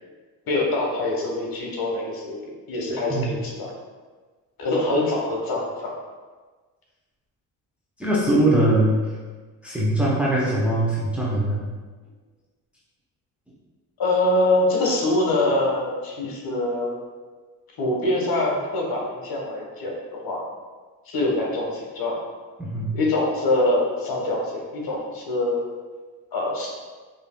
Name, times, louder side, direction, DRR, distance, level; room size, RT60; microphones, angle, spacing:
voice 1, 0.5-2.4 2.7-3.7 4.6-5.9 14.0-17.0 17.8-20.4 21.1-22.1 22.9-25.7 26.3-26.7, left 2 dB, 55° left, -2 dB, 1.2 m, -24 dB
voice 2, 8.0-9.0 9.6-11.7 22.6-22.9, right 1 dB, 5° right, -6 dB, 0.9 m, -21 dB
4.8 x 2.7 x 2.3 m, 1.4 s
supercardioid pair, 55°, 43 cm